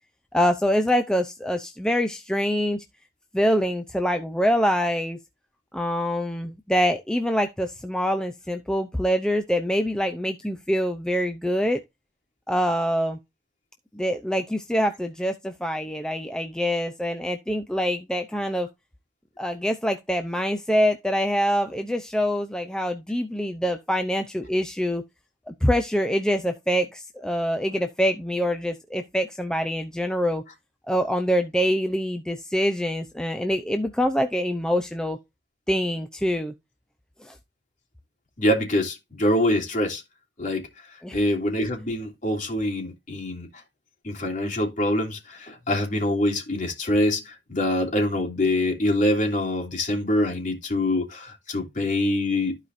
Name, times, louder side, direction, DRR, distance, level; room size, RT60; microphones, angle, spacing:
voice 1, 0.3-2.8 3.3-5.2 5.7-11.8 12.5-13.2 13.9-18.7 19.4-25.0 25.5-30.4 30.9-35.2 35.7-36.5 37.2-37.3 41.0-41.2, equal, 5° left, 0.6 m, -25 dB
voice 2, 38.4-40.0 40.4-40.7 41.1-43.5 44.0-52.6, left 1 dB, 45° left, 3.2 m, -25 dB
14.0 x 4.9 x 2.6 m
head